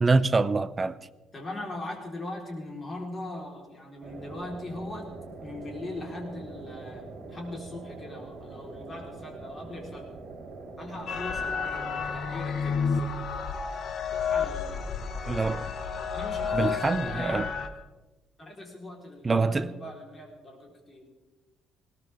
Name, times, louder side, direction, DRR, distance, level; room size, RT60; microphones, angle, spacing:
voice 1, 0.0-1.0 15.3-15.7 16.5-17.5 19.2-19.7, right 3 dB, 20° right, 0.6 m, -25 dB
voice 2, 1.3-5.1 5.4-10.1 10.8-13.3 14.0-15.5 16.1-17.5 18.4-21.1, left 1 dB, 25° left, 4.3 m, -40 dB
sound 1, 4.0-12.3, right 3 dB, 45° right, 5.9 m, -43 dB
sound 2, 11.1-17.7, left 6 dB, 45° left, 1.4 m, -31 dB
21.0 x 17.5 x 3.7 m
cardioid pair, 145°, 0 cm